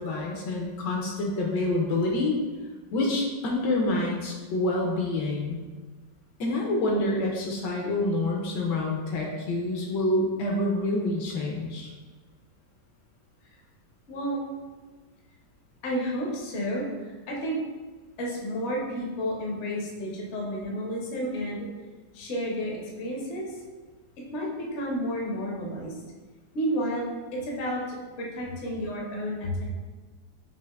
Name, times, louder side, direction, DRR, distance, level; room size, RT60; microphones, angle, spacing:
voice 1, 0.0-2.4 2.9-5.6 6.4-11.9, left 2 dB, 75° left, -1 dB, 1.2 m, -27 dB
voice 2, 14.1-14.4 15.8-17.6 18.2-21.7 22.1-23.5 24.2-25.9 26.5-29.6, equal, 55° left, -2 dB, 0.7 m, -31 dB
5.5 x 2.5 x 2.3 m, 1.3 s
omnidirectional pair, 2.0 m